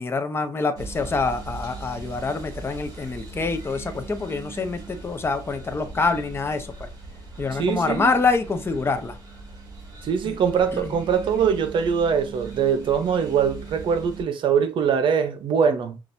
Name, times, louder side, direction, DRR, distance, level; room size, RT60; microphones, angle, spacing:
voice 1, 0.0-6.9 7.4-9.2 10.2-10.4 10.7-11.0, left 4 dB, 25° left, 0.8 m, -26 dB
sound 1, 0.8-14.2, right 3 dB, 45° right, 2.2 m, -39 dB
voice 2, 7.5-8.1 10.0-16.0, right 7 dB, 60° right, 0.7 m, -22 dB
5.8 x 2.4 x 2.6 m
cardioid pair, 105°, 9 cm